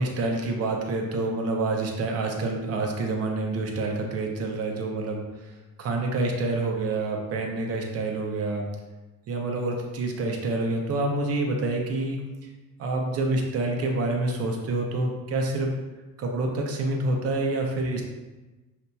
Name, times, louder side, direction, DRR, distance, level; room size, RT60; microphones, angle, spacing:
voice 1, 0.0-5.2 5.8-8.6 9.3-12.2 12.8-15.7 16.2-18.0, right 2 dB, 40° right, 1 dB, 0.6 m, -27 dB
6.5 x 2.7 x 2.3 m, 1.2 s
cardioid pair, 180°, 36 cm